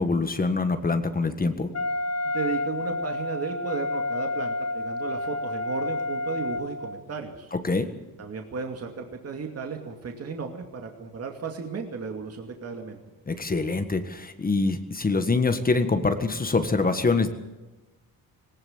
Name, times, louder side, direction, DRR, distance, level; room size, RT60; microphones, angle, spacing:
voice 1, 0.0-1.7 7.5-7.9 13.3-17.3, left 3 dB, 25° left, 8 dB, 1.6 m, -24 dB
Wind instrument woodwind instrument, 1.7-7.0, left 2 dB, 45° left, 1.4 m, -30 dB
voice 2, 2.3-7.5 8.2-13.0, right 5 dB, 40° right, 3 dB, 2.5 m, -34 dB
19.5 x 18.5 x 7.4 m, 1.1 s
cardioid pair, 120°, 36 cm